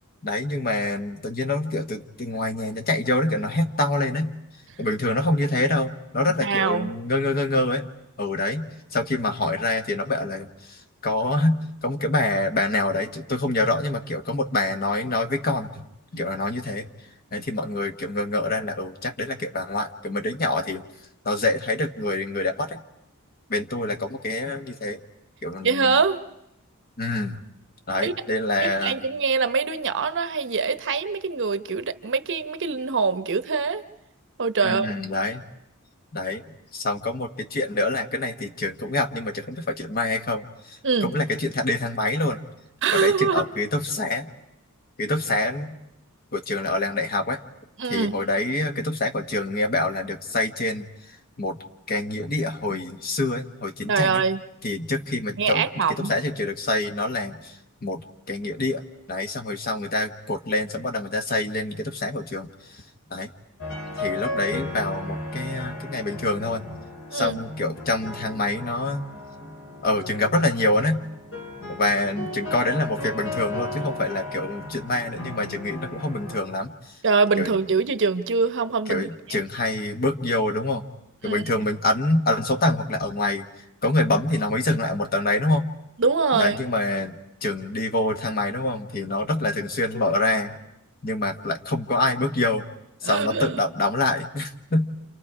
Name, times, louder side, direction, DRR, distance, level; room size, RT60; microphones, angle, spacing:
voice 1, 0.2-4.4 4.8-7.9 8.2-15.9 16.1-16.9 17.3-20.8 21.2-22.8 23.5-25.0 25.4-26.0 27.0-27.4 27.9-29.0 34.6-35.4 36.1-36.4 36.7-42.4 42.9-44.3 45.0-45.8 46.3-47.4 47.9-50.8 51.4-51.6 51.9-54.2 54.6-57.6 57.8-58.8 59.1-62.8 63.1-63.3 64.0-66.6 67.1-69.0 69.8-71.0 71.7-76.9 77.4-77.5 78.9-80.8 81.2-83.4 83.8-85.7 86.3-90.6 91.0-92.7 93.0-94.9, left 2 dB, 45° left, 6 dB, 1.3 m, -26 dB
voice 2, 6.4-6.9 25.6-26.2 28.0-28.1 28.6-33.8 34.4-34.9 40.8-41.1 42.8-43.5 47.8-48.1 53.9-54.4 55.4-56.1 67.1-67.4 77.0-79.4 81.2-81.4 86.0-86.6 93.0-93.6, right 5 dB, 55° right, 10 dB, 0.9 m, -23 dB
sound 1, 63.6-76.4, left 2 dB, 65° left, 5.0 m, -35 dB
29.5 x 28.0 x 4.9 m, 0.81 s
head